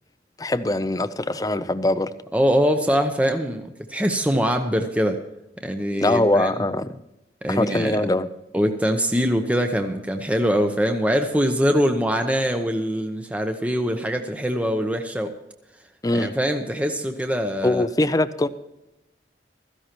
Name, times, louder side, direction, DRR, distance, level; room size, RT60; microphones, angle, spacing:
voice 1, 0.4-2.1 6.0-7.0 7.5-8.3 16.0-16.3 17.6-18.5, left 1 dB, 20° left, 13 dB, 0.6 m, -22 dB
voice 2, 2.3-5.2 5.6-6.5 7.4-8.0 8.5-15.3 16.1-17.9, equal, 10° right, 5 dB, 0.8 m, -23 dB
16.5 x 14.5 x 3.0 m, 0.92 s
head